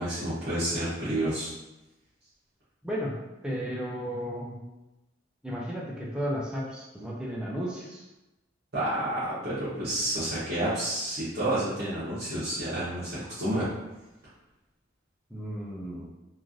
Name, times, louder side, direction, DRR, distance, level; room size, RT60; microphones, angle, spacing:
voice 1, 0.0-1.5 8.7-13.7, right 1 dB, 60° right, -13 dB, 0.9 m, -30 dB
voice 2, 2.8-3.2 3.4-4.7 5.4-8.1 15.3-16.2, equal, 5° right, -5 dB, 0.4 m, -34 dB
3.1 x 2.5 x 2.5 m, 1.0 s
head